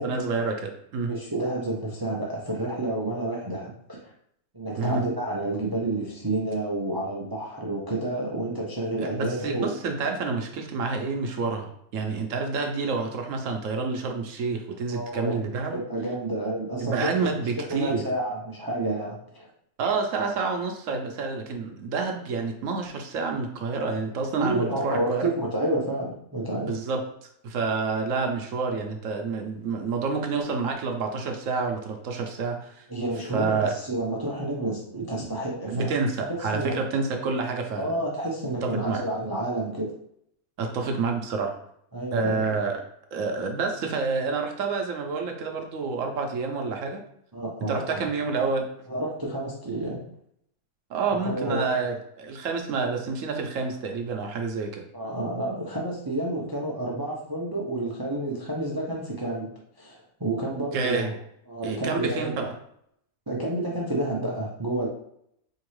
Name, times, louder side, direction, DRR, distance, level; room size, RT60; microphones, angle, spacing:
voice 1, 0.0-1.1 4.8-5.0 9.0-15.8 16.8-18.0 19.8-25.3 26.7-32.9 33.3-33.7 35.7-37.9 38.6-39.0 40.6-41.6 42.1-42.8 43.1-47.0 47.7-48.6 50.9-54.8 60.7-61.1 61.6-62.5, right 4 dB, 65° right, 3 dB, 1.0 m, -28 dB
voice 2, 1.0-4.0 4.5-9.7 14.9-15.4 15.7-17.3 17.8-19.5 24.4-26.7 32.9-35.9 36.3-36.7 37.8-39.9 41.9-42.4 47.3-48.0 48.9-50.0 51.2-51.7 54.9-59.5 59.8-61.2 61.5-62.4 63.3-64.9, right 1 dB, 30° right, -3 dB, 0.4 m, -30 dB
4.5 x 2.8 x 3.1 m, 0.71 s
omnidirectional pair, 1.5 m